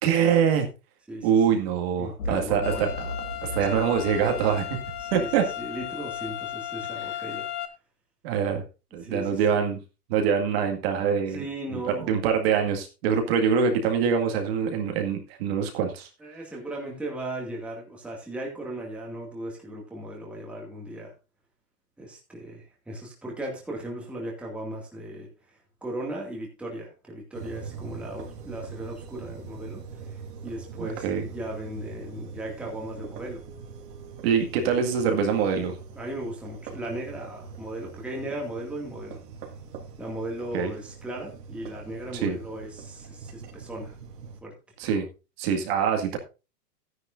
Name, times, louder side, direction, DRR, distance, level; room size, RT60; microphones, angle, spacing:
voice 1, 0.0-0.7 1.2-3.1 3.4-4.6 5.1-5.4 8.2-8.6 8.9-9.8 10.1-11.4 11.7-11.8 12.1-16.1 30.8-31.3 34.2-35.8 40.5-40.7 42.2-42.4 44.8-45.1 45.4-46.2, right 7 dB, 40° right, 4 dB, 2.1 m, -24 dB
voice 2, 1.1-1.6 2.0-2.9 5.0-7.5 9.0-9.6 11.3-12.1 16.2-21.1 22.0-33.4 36.0-39.2 40.0-44.0 44.4-44.5, right 1 dB, ahead, -2 dB, 2.1 m, -37 dB
sound 1, 2.2-6.5, left 1 dB, 50° left, 4.0 m, -38 dB
sound 2, 2.6-7.7, left 12 dB, 15° left, 0.5 m, -35 dB
sound 3, 27.3-44.4, right 5 dB, 75° right, 3.4 m, -43 dB
13.5 x 10.0 x 2.6 m, 0.30 s
supercardioid pair, 165°, 48 cm